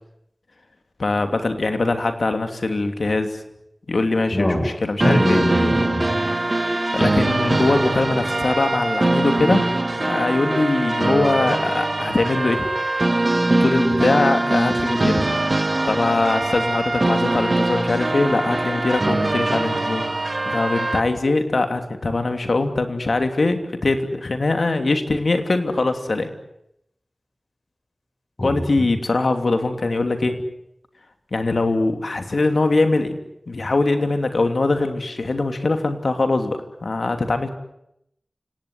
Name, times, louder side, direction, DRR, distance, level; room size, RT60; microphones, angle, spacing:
voice 1, 1.0-3.4 3.9-5.4 6.9-9.7 10.0-12.7 13.6-15.2 15.9-20.1 20.4-26.3 28.4-30.4 31.3-33.2 33.5-37.5, left 2 dB, 75° left, 7 dB, 2.9 m, -22 dB
voice 2, 5.0-6.1 28.4-28.6, left 1 dB, 40° left, 5 dB, 7.3 m, -21 dB
sound 1, 5.0-21.0, right 2 dB, 50° right, 2.0 m, -22 dB
28.5 x 18.0 x 9.8 m, 0.80 s
wide cardioid pair, 45°, 0 cm